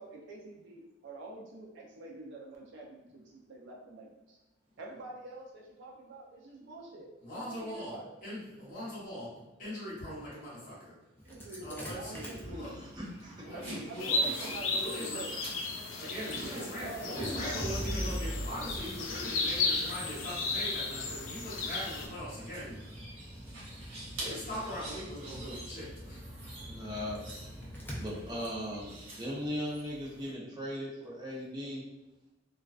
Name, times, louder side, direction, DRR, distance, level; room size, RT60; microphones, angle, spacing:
voice 1, 0.0-4.4 4.8-7.1 7.3-8.1 11.2-12.9 13.4-15.3 16.2-17.9, right 2 dB, 65° right, -3 dB, 0.4 m, -46 dB
voice 2, 7.2-10.9 11.6-12.7 13.4-14.3 14.8-15.2 16.0-22.8 23.9-26.2, equal, 45° left, -9 dB, 1.0 m, -41 dB
Engine starting, 11.2-30.1, equal, 10° left, 0.4 m, -44 dB
sound 1, 11.7-30.3, right 1 dB, 90° right, 1.1 m, -49 dB
voice 3, 12.5-13.5 26.7-27.7 28.0-31.8, equal, 20° right, -6 dB, 0.7 m, -39 dB
sound 2, 14.0-22.1, left 3 dB, 85° left, 0.4 m, -34 dB
2.3 x 2.3 x 2.3 m, 0.99 s
head